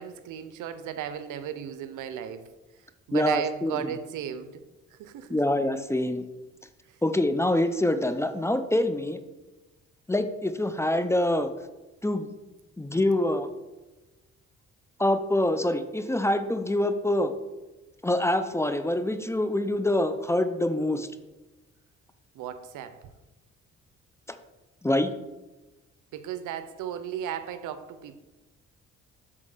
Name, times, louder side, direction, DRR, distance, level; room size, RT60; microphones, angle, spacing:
voice 1, 0.0-2.4 3.1-4.6 5.0-5.4 22.3-23.0 26.1-28.2, right 9 dB, 85° right, 11 dB, 0.7 m, -35 dB
voice 2, 3.1-3.8 5.3-6.3 7.0-9.2 10.1-11.5 12.0-12.3 12.8-13.5 15.0-17.3 18.0-21.1 24.8-25.1, left 1 dB, 10° left, 9 dB, 0.5 m, -25 dB
7.5 x 4.2 x 6.6 m, 1.1 s
cardioid pair, 90°, 30 cm